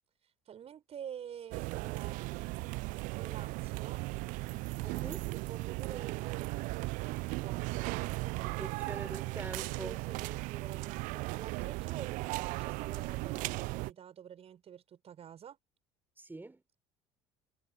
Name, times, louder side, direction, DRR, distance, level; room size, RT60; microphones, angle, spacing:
voice 1, 0.5-2.6 3.1-4.1 4.9-5.1 5.3-8.7 9.8-15.6, right 9 dB, 40° right, 7.1 m, -48 dB
sound 1, 1.5-13.9, right 24 dB, 55° right, 0.7 m, -37 dB
voice 2, 4.8-5.3 8.6-10.0 16.2-16.6, right 2 dB, 15° right, 5.1 m, -44 dB
figure-of-eight pair, 65°, 16 cm